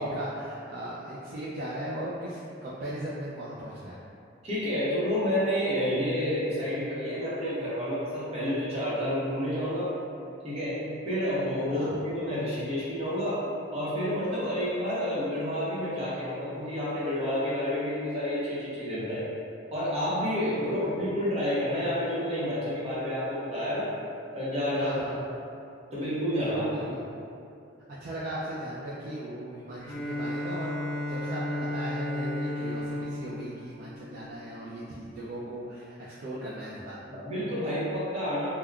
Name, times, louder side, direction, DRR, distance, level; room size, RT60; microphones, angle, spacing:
voice 1, 0.0-4.0 11.7-11.9 20.4-20.9 24.8-25.2 26.4-27.0 28.0-37.0, right 1 dB, 50° right, -8 dB, 0.3 m, -38 dB
voice 2, 4.4-9.9 10.4-13.4 13.7-19.3 19.7-23.9 24.3-25.1 25.9-26.6 37.1-38.5, equal, 35° right, -10 dB, 0.9 m, -29 dB
Bowed string instrument, 29.8-34.6, left 1 dB, 15° right, 1.4 m, -34 dB
3.5 x 2.2 x 2.3 m, 2.6 s
head